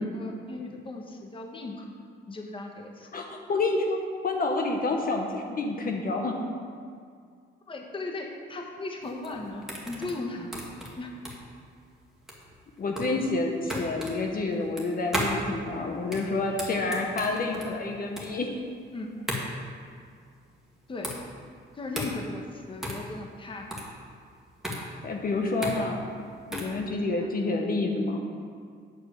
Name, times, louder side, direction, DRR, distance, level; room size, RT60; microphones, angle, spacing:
voice 1, 0.0-1.9 2.3-3.1 7.7-10.5 11.0-11.2 13.7-13.9 18.9-19.1 20.9-21.2 21.7-23.7 27.0-27.3 27.8-28.2, left 2 dB, 25° left, 2 dB, 1.1 m, -37 dB
voice 2, 3.1-4.0 4.2-6.4 12.8-18.5 25.0-26.0 26.5-28.2, left 3 dB, 45° left, 2 dB, 1.0 m, -28 dB
sound 1, 9.0-26.8, equal, ahead, 1.9 m, -36 dB
8.6 x 4.5 x 6.7 m, 2.2 s
cardioid pair, 90°, 20 cm